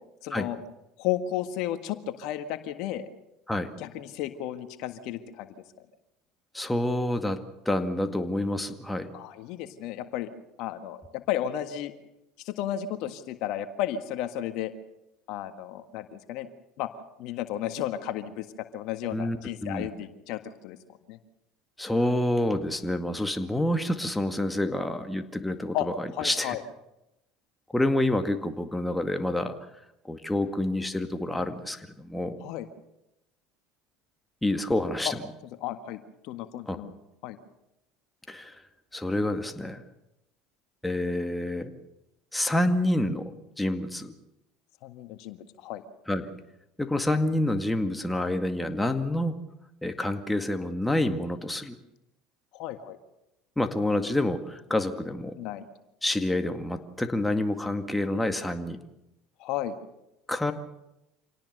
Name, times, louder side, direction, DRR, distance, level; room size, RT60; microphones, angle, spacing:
voice 1, 0.2-0.6 1.0-3.1 3.8-5.5 9.1-10.3 10.6-11.9 12.4-14.7 15.3-16.5 16.8-16.9 17.2-18.5 18.7-20.8 21.1-21.2 25.7-25.9 26.1-26.6 32.4-32.7 35.6-37.0 37.2-37.4 44.8-45.8 52.5-53.0 55.3-55.6 59.4-59.8, left 11 dB, 65° left, 9 dB, 1.7 m, -33 dB
voice 2, 6.5-9.1 19.1-19.4 19.6-19.9 21.8-25.8 26.2-26.6 27.7-29.6 30.0-32.4 34.4-35.2 36.7-36.8 38.3-38.6 38.9-39.8 40.8-41.7 42.3-44.1 46.1-46.3 46.8-49.4 49.8-51.8 53.6-55.3 56.0-58.8 60.3-60.5, left 1 dB, 5° left, 6 dB, 2.1 m, -28 dB
26.5 x 18.0 x 6.7 m, 0.88 s
hypercardioid pair, 80°, 0 cm